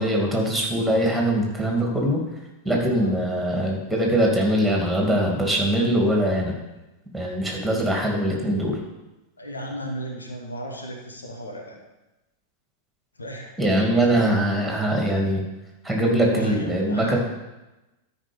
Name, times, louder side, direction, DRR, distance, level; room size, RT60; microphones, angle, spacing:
voice 1, 0.0-2.2 2.6-6.6 7.1-8.8 13.6-15.4 15.8-17.2, right 1 dB, ahead, -1 dB, 2.6 m, -22 dB
voice 2, 9.4-11.8 13.2-13.6 16.3-17.2, right 1 dB, 75° left, 1 dB, 1.6 m, -34 dB
13.0 x 5.3 x 5.3 m, 1.0 s
figure-of-eight pair, 90°, 0 cm